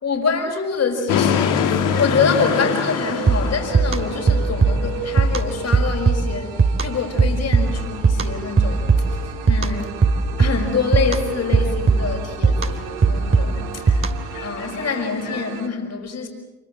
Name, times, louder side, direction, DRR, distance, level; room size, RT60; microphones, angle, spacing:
voice 1, 0.0-10.1 10.4-13.9 14.4-16.3, left 5 dB, 50° left, 5.6 m, -25 dB
sound 1, 1.1-8.1 8.4-8.6 8.9-9.7 10.0-11.2 11.4-12.9 13.2-15.4, left 7 dB, 65° left, 2.2 m, -26 dB
sound 2, 1.9-15.7, right 12 dB, 70° right, 1.4 m, -35 dB
sound 3, 3.3-14.4, right 4 dB, 40° right, 3.2 m, -20 dB
29.0 x 24.0 x 7.8 m
figure-of-eight pair, 40°, 34 cm